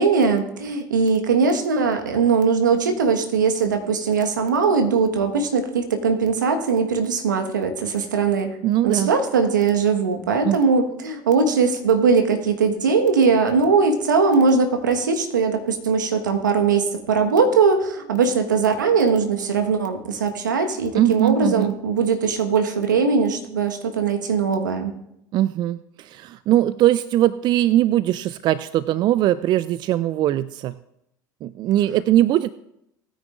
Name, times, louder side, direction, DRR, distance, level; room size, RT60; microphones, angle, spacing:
voice 1, 0.0-8.6 8.8-24.9, right 5 dB, 85° right, 5 dB, 1.4 m, -20 dB
voice 2, 8.6-9.1 10.4-10.6 20.9-21.7 25.3-30.8 31.4-32.5, right 13 dB, 50° right, 16 dB, 0.4 m, -20 dB
19.0 x 9.5 x 2.5 m, 0.79 s
hypercardioid pair, 70°, 10 cm